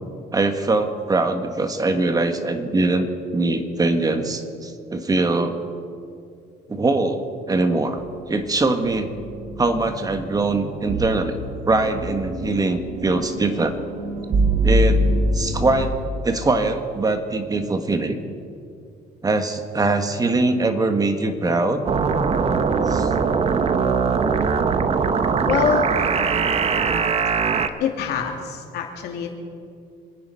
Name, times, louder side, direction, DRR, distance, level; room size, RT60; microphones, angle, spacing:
voice 1, 0.3-3.1 3.3-5.6 6.7-8.0 8.3-9.1 9.6-11.4 11.7-13.7 14.6-15.0 15.3-16.0 16.2-18.2 19.2-21.8 22.9-23.1, right 2 dB, 20° right, 7 dB, 1.6 m, -22 dB
sound 1, 8.6-15.9, right 1 dB, 55° right, 1.8 m, -25 dB
sound 2, 21.9-27.7, right 5 dB, 35° right, 1.0 m, -21 dB
voice 2, 25.5-25.9 27.8-29.4, left 8 dB, 80° left, 2 dB, 2.6 m, -24 dB
26.5 x 9.6 x 5.6 m, 2.4 s
cardioid pair, 110°, 17 cm